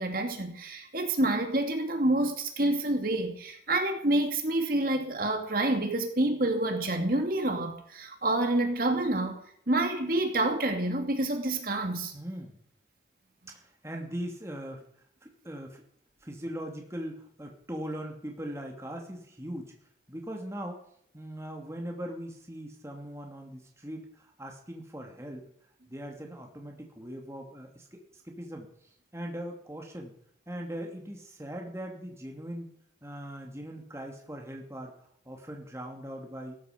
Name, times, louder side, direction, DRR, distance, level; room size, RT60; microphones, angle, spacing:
voice 1, 0.0-9.4 9.7-12.1, right 2 dB, 50° right, 2.5 m, -28 dB
voice 2, 12.1-12.6 13.5-14.8 15.2-15.8 16.2-19.7 20.1-20.8 21.1-25.4 25.9-28.7 29.1-30.1 30.5-32.7 33.0-34.9 35.2-36.6, equal, 15° right, 2.6 m, -40 dB
17.0 x 14.0 x 5.2 m
head